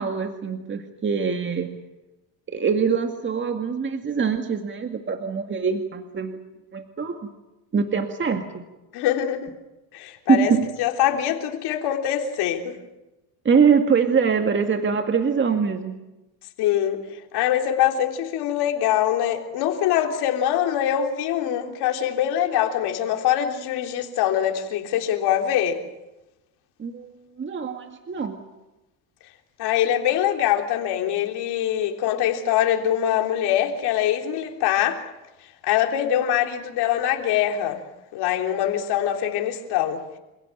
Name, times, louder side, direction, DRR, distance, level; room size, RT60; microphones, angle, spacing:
voice 1, 0.0-1.8 2.5-6.4 6.7-7.2 7.7-8.6 10.3-10.7 13.4-16.0 26.8-27.1 27.4-28.4, right 6 dB, 30° right, 2.1 m, -23 dB
voice 2, 8.9-9.5 9.9-10.5 10.8-12.7 16.6-25.8 29.6-35.0 35.6-37.8 38.1-40.0, left 11 dB, 80° left, 3.6 m, -23 dB
28.0 x 16.5 x 9.1 m
cardioid pair, 105°, 39 cm